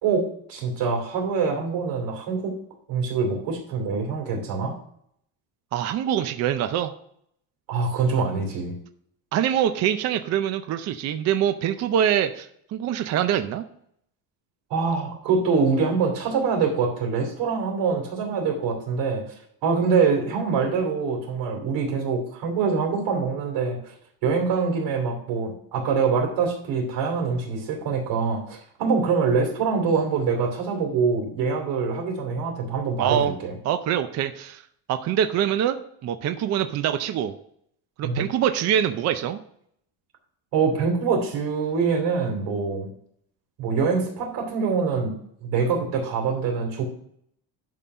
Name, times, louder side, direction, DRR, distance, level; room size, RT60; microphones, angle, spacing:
voice 1, 0.0-2.5 2.9-4.7 7.7-8.8 14.7-19.3 19.6-23.9 24.2-33.5 38.0-38.3 40.5-42.9 43.6-45.1 45.4-46.8, right 5 dB, 70° right, 1 dB, 3.0 m, -24 dB
voice 2, 5.7-6.9 9.3-13.6 33.0-33.4 33.6-34.6 34.9-37.3 38.0-39.4, right 10 dB, 40° right, 9 dB, 0.5 m, -24 dB
11.0 x 3.9 x 5.5 m, 0.68 s
cardioid pair, 175°, 45 cm